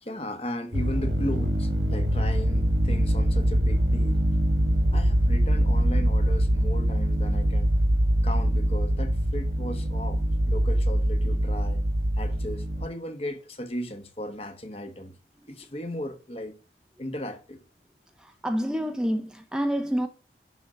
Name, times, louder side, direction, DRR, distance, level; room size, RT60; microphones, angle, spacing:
voice 1, 0.0-4.2 4.9-7.7 8.2-11.8 12.2-15.2 15.5-16.6 17.0-17.6, left 1 dB, 35° left, 1.2 m, -36 dB
sound 1, 0.7-12.9, equal, 85° right, 1.7 m, -23 dB
voice 2, 18.4-20.1, equal, 5° right, 0.6 m, -27 dB
11.0 x 3.9 x 5.7 m
head